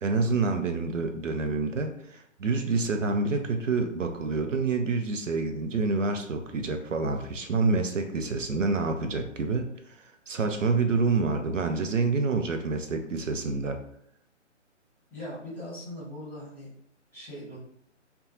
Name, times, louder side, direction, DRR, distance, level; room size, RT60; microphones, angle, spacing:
voice 1, 0.0-10.0 10.3-13.8, right 3 dB, 90° right, 6 dB, 0.5 m, -27 dB
voice 2, 15.1-16.7 17.1-17.6, left 1 dB, 5° left, -11 dB, 1.1 m, -40 dB
2.7 x 2.2 x 2.4 m, 0.71 s
figure-of-eight pair, 135°, 37 cm